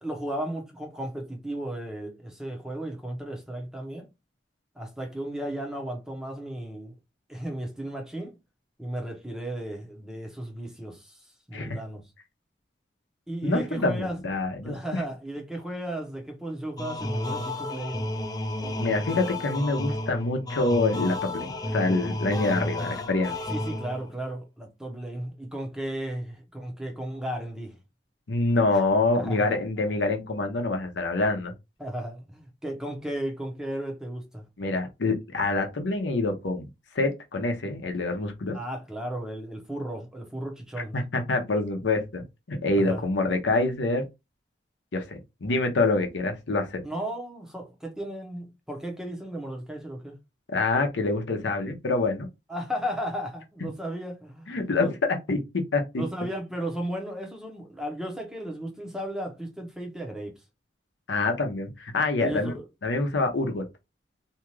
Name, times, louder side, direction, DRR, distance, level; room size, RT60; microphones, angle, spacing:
voice 1, 0.0-4.1 4.7-7.0 7.3-8.4 8.8-11.2 11.5-12.0 13.3-14.2 14.6-18.1 23.5-27.8 28.7-28.8 29.1-29.6 29.9-30.0 31.8-34.4 38.5-40.9 42.8-43.0 46.8-50.2 52.5-54.9 56.0-60.4 62.2-62.6, right 1 dB, 5° right, 0.7 m, -35 dB
voice 2, 13.4-15.0 18.8-23.3 28.3-31.5 34.6-36.7 36.9-38.6 40.9-42.2 42.5-44.0 44.9-46.8 50.5-52.3 54.5-54.9 55.3-55.4 55.7-55.8 61.1-62.5 62.8-63.6, left 2 dB, 80° left, 0.7 m, -26 dB
sound 1, 16.8-24.2, left 1 dB, 20° left, 0.4 m, -32 dB
2.7 x 2.3 x 3.0 m
head